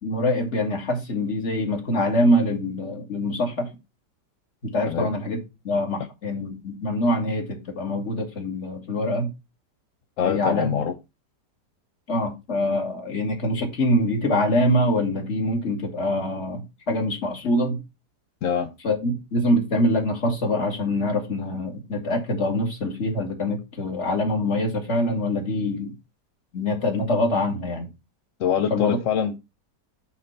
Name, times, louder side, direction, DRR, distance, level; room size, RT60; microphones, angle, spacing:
voice 1, 0.0-3.7 4.7-5.4 5.6-9.3 10.2-10.8 12.1-17.8 18.8-25.9 26.5-27.9 28.7-29.0, left 1 dB, 40° left, 2.1 m, -24 dB
voice 2, 10.2-10.9 18.4-18.7 28.4-29.4, left 8 dB, 60° left, 0.9 m, -24 dB
8.6 x 4.1 x 4.4 m
omnidirectional pair, 1.8 m